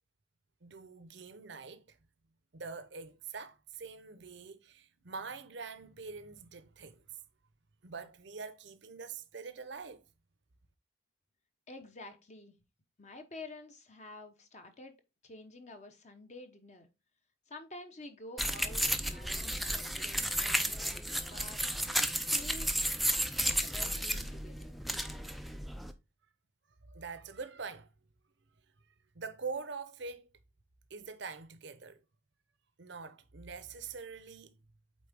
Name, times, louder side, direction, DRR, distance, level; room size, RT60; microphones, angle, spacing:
voice 1, 0.6-2.0 2.5-7.0 7.8-10.1 26.8-27.9 29.1-30.3 30.9-32.0 32.8-34.5, right 4 dB, 55° right, 0.7 m, -44 dB
voice 2, 11.7-12.6 13.0-14.9 15.2-16.9 17.5-20.8 21.3-21.6 22.0-22.7 23.6-24.7, left 2 dB, 35° left, 0.9 m, -49 dB
sound 1, 18.4-25.9, right 1 dB, ahead, 0.4 m, -33 dB
8.5 x 3.7 x 3.5 m
head